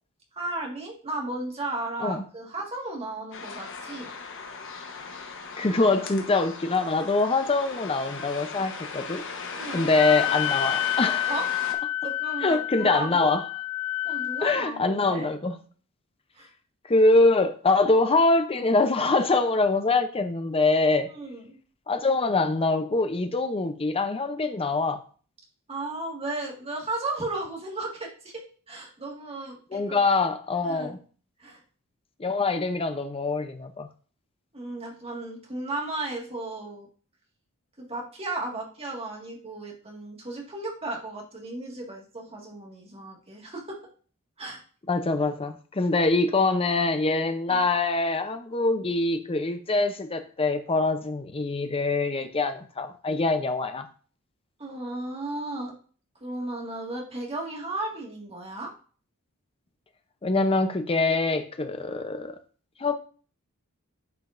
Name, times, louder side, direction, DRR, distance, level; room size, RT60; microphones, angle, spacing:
voice 1, 0.3-4.1 9.6-9.9 11.3-11.5 12.0-13.3 14.0-15.3 16.3-16.5 21.1-21.6 25.7-28.3 28.7-30.1 30.6-31.0 31.4-31.6 34.5-36.9 37.8-43.8 44.4-44.6 47.5-47.6 54.6-55.7 56.2-58.7, right 2 dB, 30° right, 1.8 m, -35 dB
sound 1, 3.3-11.7, left 4 dB, 60° left, 1.1 m, -37 dB
voice 2, 5.6-9.2 9.7-11.3 12.4-13.4 14.4-15.6 16.9-21.1 21.9-25.0 29.7-31.0 32.2-33.9 44.9-53.9 60.2-62.4 62.8-62.9, left 3 dB, 25° left, 0.6 m, -24 dB
Wind instrument woodwind instrument, 9.9-14.6, left 13 dB, 90° left, 0.3 m, -29 dB
9.3 x 5.1 x 2.6 m
head